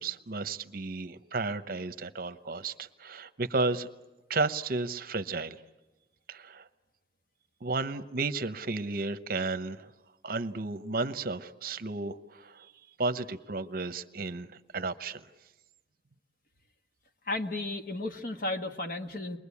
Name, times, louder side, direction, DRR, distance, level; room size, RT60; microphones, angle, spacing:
voice 1, 0.0-3.9 4.3-5.6 6.3-6.7 7.6-9.9 10.2-12.7 13.0-15.2, right 3 dB, 55° right, 11 dB, 1.0 m, -33 dB
voice 2, 17.3-19.4, left 2 dB, 50° left, 6 dB, 1.6 m, -34 dB
29.0 x 22.5 x 8.5 m, 1.1 s
head